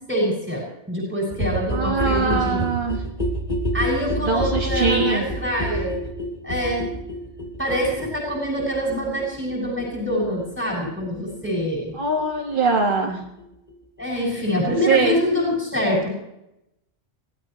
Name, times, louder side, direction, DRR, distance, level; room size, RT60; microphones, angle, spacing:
voice 1, 0.0-2.7 3.7-6.0 6.4-6.9 7.6-11.9 14.0-16.1, equal, 10° right, -4 dB, 6.7 m, -25 dB
sound 1, 1.3-12.8 13.1-13.2 13.4-13.5 13.7-13.8 14.0-14.1 14.3-14.4 14.6-14.7, equal, 35° left, 2.7 m, -29 dB
voice 2, 1.7-3.0 4.2-5.3 11.9-13.2 14.8-15.2, right 4 dB, 50° right, -1 dB, 1.9 m, -22 dB
23.5 x 17.0 x 3.2 m, 0.84 s
omnidirectional pair, 1.1 m